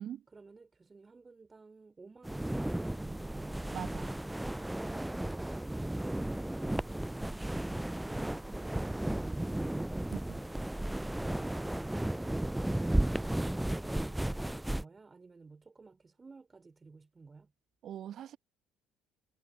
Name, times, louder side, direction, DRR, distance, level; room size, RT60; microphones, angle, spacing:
voice 1, 0.3-3.8 4.9-10.2 11.1-12.1 12.4-17.5, right 4 dB, 25° right, 5.5 m, -54 dB
sound 1, 2.2-14.8, right 1 dB, 5° right, 0.5 m, -34 dB
voice 2, 3.7-4.1 10.3-10.4 17.8-18.4, right 10 dB, 50° right, 1.8 m, -42 dB
figure-of-eight pair, 55°, 0 cm